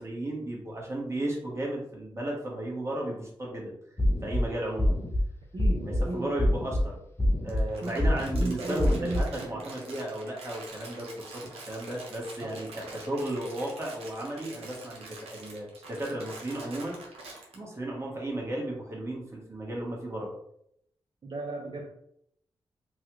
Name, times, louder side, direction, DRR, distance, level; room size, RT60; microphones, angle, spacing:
voice 1, 0.0-3.7 4.2-5.0 5.9-7.0 7.4-17.0 17.5-20.3, right 1 dB, 30° right, -2 dB, 1.4 m, -34 dB
sound 1, 4.0-4.4 4.8-5.2 5.6-6.0 6.4-6.8 7.2-7.6 8.0-8.4 8.8-9.2, left 1 dB, 25° left, 0.6 m, -25 dB
voice 2, 5.5-6.8 7.7-9.7 12.4-12.7 21.2-21.9, right 2 dB, 50° right, -2 dB, 0.6 m, -36 dB
Crumpling crinkling, 7.5-17.6, right 3 dB, 90° right, 0.8 m, -46 dB
3.1 x 2.4 x 3.0 m, 0.72 s
cardioid pair, 55°, 10 cm